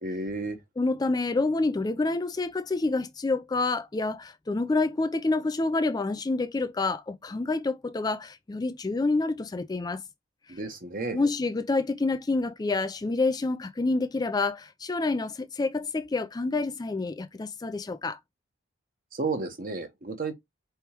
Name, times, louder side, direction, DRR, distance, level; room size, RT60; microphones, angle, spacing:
voice 1, 0.0-0.6 10.5-11.3 19.1-20.3, right 3 dB, 45° right, 1.1 m, -32 dB
voice 2, 0.8-10.0 11.1-18.2, left 3 dB, 20° left, 0.3 m, -28 dB
4.6 x 3.4 x 2.9 m
head